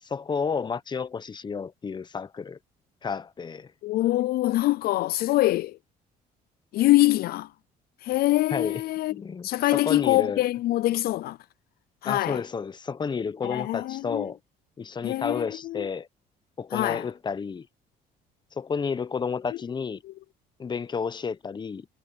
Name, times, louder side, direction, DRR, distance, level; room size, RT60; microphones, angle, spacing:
voice 1, 0.0-2.6 3.0-3.7 8.5-8.8 9.1-10.4 12.0-14.4 14.8-16.1 16.6-17.7 18.5-20.0 20.6-21.9, left 5 dB, 25° left, 0.9 m, -31 dB
voice 2, 3.8-5.8 6.7-7.5 8.0-9.1 9.4-11.4 12.0-12.4 13.4-14.3 15.0-15.9 16.7-17.1, left 17 dB, 65° left, 0.4 m, -24 dB
cardioid pair, 110°, 17 cm